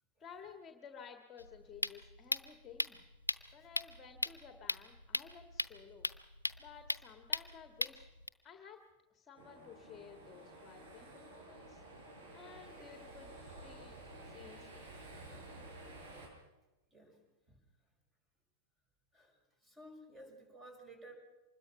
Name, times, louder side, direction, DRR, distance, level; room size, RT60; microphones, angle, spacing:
voice 1, 0.2-3.0 3.5-6.1 6.6-8.1 8.4-8.8 9.1-11.8 12.3-14.0 14.2-14.9, left 7 dB, 20° left, 6 dB, 1.8 m, -54 dB
sound 1, 1.4-8.3, left 2 dB, 85° left, 0.7 m, -39 dB
sound 2, 9.4-16.3, right 1 dB, 55° right, 6.6 m, -52 dB
voice 2, 19.1-21.1, right 1 dB, 15° right, 5 dB, 6.0 m, -55 dB
25.5 x 20.5 x 6.0 m, 1.0 s
figure-of-eight pair, 90°, 0 cm